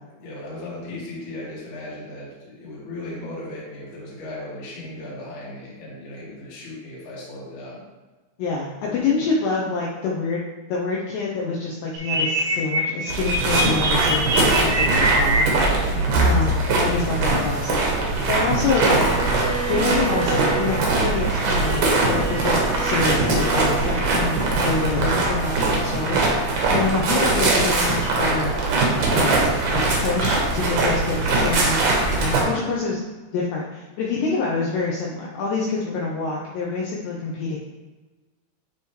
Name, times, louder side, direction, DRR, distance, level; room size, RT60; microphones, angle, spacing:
voice 1, 0.1-7.8 15.9-16.2 26.6-26.9, left 2 dB, 55° left, -7 dB, 1.4 m, -36 dB
voice 2, 8.4-15.7 16.2-19.0 19.7-22.5 22.8-28.6 29.1-29.5 29.7-31.9 32.1-33.0 33.3-37.6, left 4 dB, 90° left, -4 dB, 2.3 m, -26 dB
sound 1, 11.9-15.4, right 1 dB, 70° right, 3.4 m, -23 dB
sound 2, 13.1-32.4, right 2 dB, 90° right, 1.7 m, -21 dB
Bowed string instrument, 18.7-24.9, right 5 dB, 55° right, 3.1 m, -32 dB
10.5 x 3.5 x 3.2 m, 1.2 s
omnidirectional pair, 5.6 m